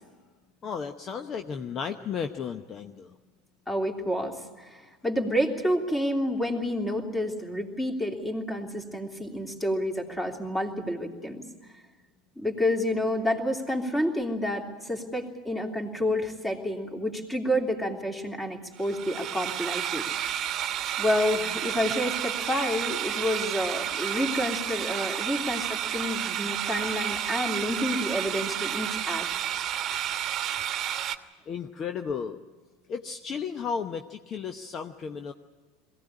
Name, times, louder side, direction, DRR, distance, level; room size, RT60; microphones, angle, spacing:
voice 1, 0.6-3.1 31.5-32.4 32.9-35.3, left 6 dB, 35° left, 7 dB, 0.9 m, -34 dB
voice 2, 3.7-11.5 12.4-20.1 21.0-29.3, left 1 dB, 10° left, 2 dB, 3.0 m, -29 dB
sound 1, 18.8-31.2, right 10 dB, 40° right, 1.2 m, -31 dB
21.5 x 16.5 x 9.9 m, 1.4 s
hypercardioid pair, 80°, 0 cm